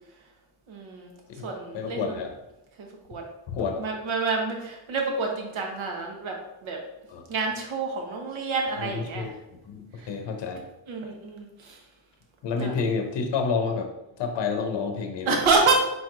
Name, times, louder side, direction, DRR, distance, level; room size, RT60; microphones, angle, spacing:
voice 1, 0.7-1.1 1.4-2.2 3.1-3.2 3.8-6.8 7.3-9.3 10.0-10.1 10.9-11.8 12.6-12.7 15.3-15.7, right 4 dB, 75° right, 1 dB, 1.1 m, -28 dB
voice 2, 1.3-2.3 3.5-3.8 7.1-7.2 8.8-9.3 9.7-10.6 12.4-13.9 14.2-15.4, left 5 dB, 60° left, 4 dB, 0.7 m, -29 dB
4.5 x 4.0 x 2.5 m, 0.94 s
cardioid pair, 125°, 48 cm